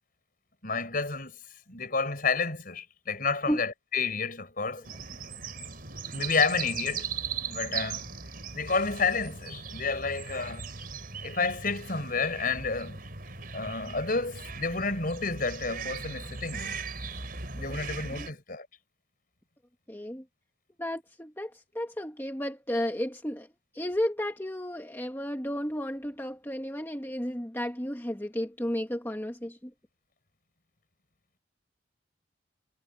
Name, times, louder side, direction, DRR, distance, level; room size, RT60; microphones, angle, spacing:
voice 1, 0.6-1.4 1.7-4.9 6.1-7.1 7.5-8.1 8.5-10.7 11.2-13.0 13.5-16.8 17.5-18.7, left 4 dB, 45° left, 5.5 m, -30 dB
sound 1, 4.8-18.3, right 5 dB, 50° right, 4.6 m, -38 dB
voice 2, 19.9-20.2 20.8-23.5 23.7-29.7, equal, 10° left, 1.5 m, -33 dB
head